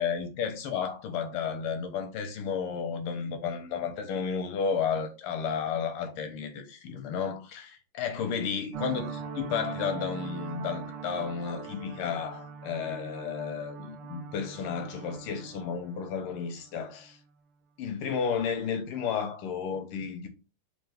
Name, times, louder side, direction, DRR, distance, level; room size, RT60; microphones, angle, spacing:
voice 1, 0.0-17.2 17.8-20.3, left 6 dB, 90° left, 1.7 m, -32 dB
sound 1, 8.7-17.1, right 6 dB, 80° right, 1.6 m, -41 dB
4.4 x 2.5 x 3.3 m
omnidirectional pair, 2.4 m